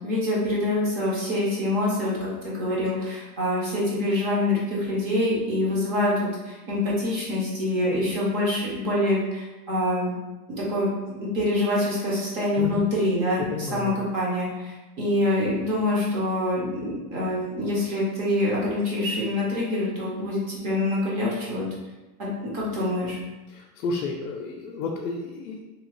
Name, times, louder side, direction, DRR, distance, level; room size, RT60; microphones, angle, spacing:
voice 1, 0.0-10.1 10.6-21.7 22.2-23.2, left 1 dB, 30° right, -5 dB, 0.7 m, -25 dB
voice 2, 13.5-13.9 23.5-25.6, left 3 dB, 70° left, 0 dB, 0.5 m, -31 dB
2.8 x 2.2 x 3.0 m, 1.1 s
supercardioid pair, 165°, 47 cm